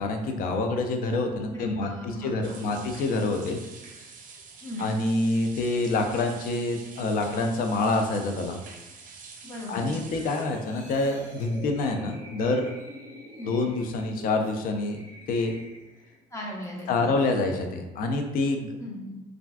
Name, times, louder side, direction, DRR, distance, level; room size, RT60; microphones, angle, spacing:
voice 1, 0.0-3.6 4.8-8.6 9.7-12.7 13.5-15.0 15.3-15.5 16.9-18.7, left 2 dB, 55° left, 4 dB, 0.4 m, -27 dB
voice 2, 1.5-2.8 4.6-4.8 9.4-10.0 13.4-13.5 16.3-17.1 18.8-19.2, left 1 dB, 15° left, -2 dB, 0.7 m, -38 dB
sound 1, 2.4-10.4, right 5 dB, 55° right, 0.5 m, -47 dB
sound 2, 10.1-16.2 16.6-16.8, left 1 dB, 85° left, 1.2 m, -46 dB
3.2 x 2.5 x 2.2 m, 1.0 s
cardioid pair, 110°, 17 cm